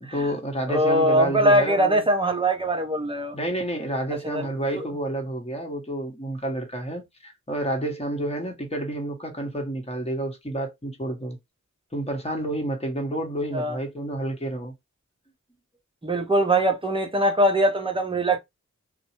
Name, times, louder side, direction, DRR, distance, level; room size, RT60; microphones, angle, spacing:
voice 1, 0.0-2.0 3.3-11.4 11.9-14.7, right 1 dB, 20° left, 1.0 m, -29 dB
voice 2, 0.7-3.4 4.3-4.5 4.7-4.9 13.5-13.8 16.0-18.4, right 1 dB, 15° right, 0.7 m, -22 dB
2.6 x 2.1 x 2.8 m
wide cardioid pair, 50°, 31 cm